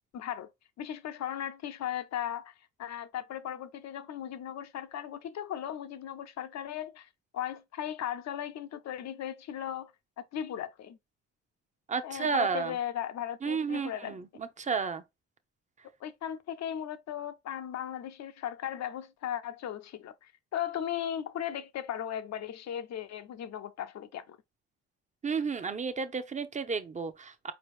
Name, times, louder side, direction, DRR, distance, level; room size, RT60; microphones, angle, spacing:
voice 1, 0.1-0.5 0.8-2.5 2.8-9.9 10.2-11.0 12.0-14.2 16.0-24.4, left 10 dB, 60° left, 0.7 m, -37 dB
voice 2, 11.9-12.8 13.4-15.0 25.2-27.5, right 5 dB, 25° right, 0.7 m, -32 dB
4.5 x 2.9 x 3.2 m
cardioid pair, 90°, 30 cm